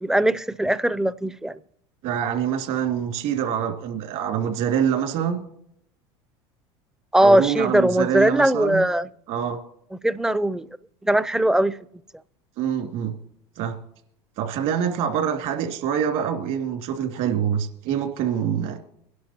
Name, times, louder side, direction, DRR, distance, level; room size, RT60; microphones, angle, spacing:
voice 1, 0.0-1.6 7.1-9.1 10.0-10.7 11.0-11.8, right 1 dB, 5° right, 0.4 m, -20 dB
voice 2, 2.0-5.4 7.2-8.8 9.3-9.6 12.6-13.2 13.6-13.8 14.4-18.8, right 8 dB, 65° right, 2.5 m, -25 dB
23.0 x 11.5 x 2.8 m
supercardioid pair, 100°, 14 cm